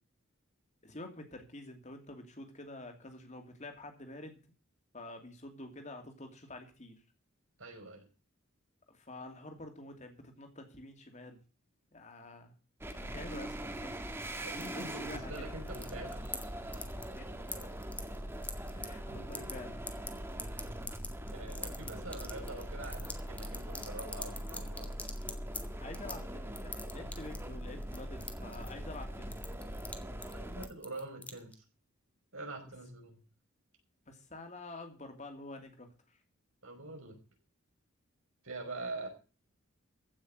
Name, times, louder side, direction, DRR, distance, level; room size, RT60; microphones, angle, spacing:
voice 1, 0.8-4.4 4.9-7.0 8.9-11.4 11.9-12.5 13.0-13.9 14.7-15.5 17.2-17.3 18.8-19.8 20.4-20.8 25.8-29.3 34.1-36.2, left 2 dB, 35° left, 5 dB, 2.6 m, -48 dB
voice 2, 7.6-8.1 14.3-16.3 21.3-24.9 30.3-31.5 32.3-33.2 36.6-37.2 38.4-39.1, right 2 dB, 75° right, 3 dB, 5.2 m, -44 dB
sound 1, 12.8-30.7, equal, 10° right, 1.6 m, -42 dB
sound 2, 14.6-15.4 15.7-16.4 16.7-17.2 17.5-18.9 19.2-19.5 19.9-25.6 25.9-26.2 26.6-27.5 27.8-29.0 29.3-30.0 30.2-30.3 30.6-31.5, left 2 dB, 5° left, 1.5 m, -42 dB
15.5 x 6.3 x 7.8 m, 0.35 s
head